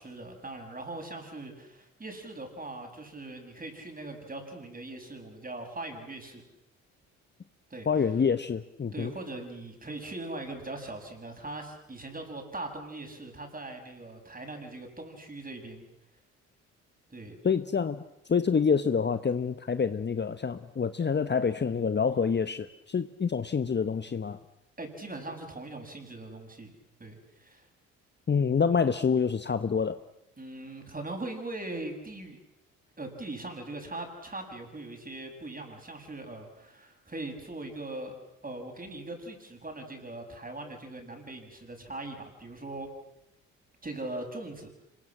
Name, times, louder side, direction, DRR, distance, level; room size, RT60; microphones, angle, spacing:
voice 1, 0.0-6.4 7.7-8.0 8.9-15.9 17.1-17.4 24.8-26.7 27.0-27.7 30.4-32.4 33.0-38.1 38.4-42.9 43.8-44.7, right 2 dB, 25° right, 4 dB, 7.4 m, -40 dB
voice 2, 7.9-9.1 17.4-18.0 18.3-24.4 28.3-30.0, left 6 dB, 30° left, 11 dB, 1.2 m, -27 dB
26.0 x 22.5 x 7.4 m, 0.85 s
hypercardioid pair, 55°, 36 cm